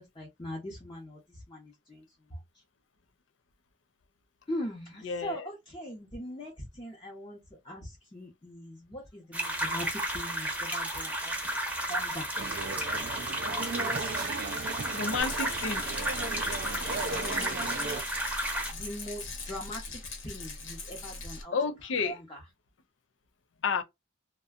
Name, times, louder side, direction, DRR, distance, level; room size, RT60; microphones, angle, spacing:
voice 1, 0.0-2.0 2.3-2.4 4.5-7.4 7.6-11.3 11.9-12.3 15.8-16.0 17.0-18.0 18.7-21.5 22.0-22.4, equal, 25° left, 0.8 m, -41 dB
voice 2, 5.0-5.5 14.9-15.9 21.5-22.2 23.6-23.8, left 5 dB, 70° left, 0.5 m, -31 dB
sound 1, 9.3-18.7, right 1 dB, 10° right, 0.8 m, -33 dB
sound 2, 12.4-18.0, right 4 dB, 50° right, 0.4 m, -37 dB
Rattle, 15.2-21.4, left 3 dB, 90° left, 1.0 m, -41 dB
2.6 x 2.2 x 2.3 m
head